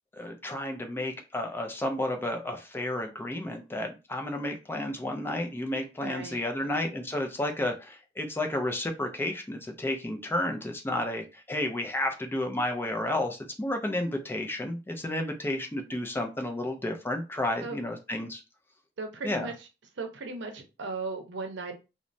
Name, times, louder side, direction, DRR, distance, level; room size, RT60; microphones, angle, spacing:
voice 1, 0.2-18.4 19.2-19.5, left 1 dB, 10° left, 0.4 m, -32 dB
voice 2, 6.0-6.8 17.6-17.8 19.0-19.7 20.0-21.7, right 3 dB, 75° right, 0.6 m, -37 dB
3.0 x 2.1 x 2.6 m
head